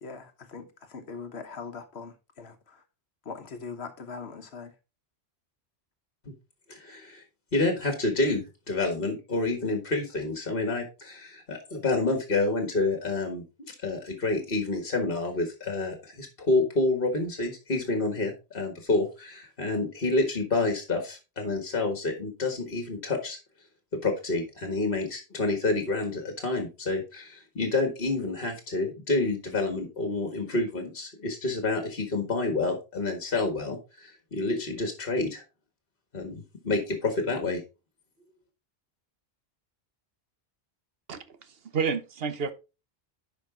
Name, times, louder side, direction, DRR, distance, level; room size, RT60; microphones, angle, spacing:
voice 1, 0.0-2.8 3.2-4.7, left 5 dB, 75° left, 1.3 m, -41 dB
voice 2, 6.7-7.2 7.5-13.4 13.8-23.4 24.0-35.4 36.1-37.6, left 2 dB, 60° left, 1.8 m, -28 dB
voice 3, 41.1-42.5, right 5 dB, 65° right, 1.2 m, -30 dB
10.5 x 4.9 x 3.8 m
omnidirectional pair, 1.1 m